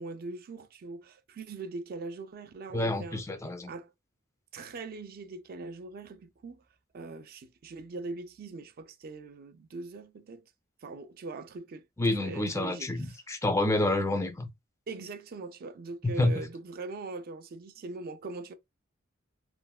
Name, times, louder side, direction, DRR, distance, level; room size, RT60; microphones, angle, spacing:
voice 1, 0.0-3.2 3.7-3.9 4.5-6.6 6.9-10.4 10.8-13.2 14.9-18.5, right 3 dB, 45° right, 0.4 m, -41 dB
voice 2, 2.7-3.7 12.0-14.5 16.0-16.4, left 2 dB, 15° left, 0.4 m, -28 dB
3.2 x 2.1 x 2.3 m
head